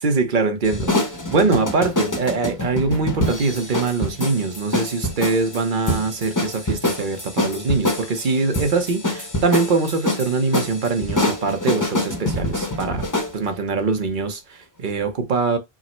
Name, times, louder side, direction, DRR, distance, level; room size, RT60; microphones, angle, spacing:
voice 1, 0.0-13.0 13.3-15.6, right 4 dB, 55° right, 0.9 m, -23 dB
sound 1, 0.6-13.4, left 1 dB, 20° left, 0.9 m, -25 dB
4.8 x 2.1 x 4.3 m
omnidirectional pair, 1.0 m